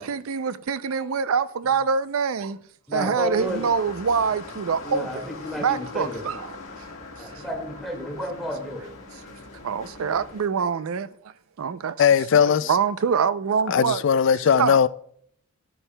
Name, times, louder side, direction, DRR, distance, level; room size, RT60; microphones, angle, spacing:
voice 1, 0.0-2.6 2.9-5.2 5.6-6.5 7.3-7.4 9.6-12.0 12.3-14.0 14.6-14.8, right 6 dB, 75° right, 0.4 m, -25 dB
voice 2, 2.9-3.6 4.8-6.2 7.2-8.8, equal, ahead, 1.9 m, -31 dB
sound 1, 3.3-10.5, left 3 dB, 70° left, 1.7 m, -42 dB
voice 3, 12.0-12.7 13.7-14.9, left 7 dB, 55° left, 0.3 m, -19 dB
12.5 x 9.8 x 2.2 m
head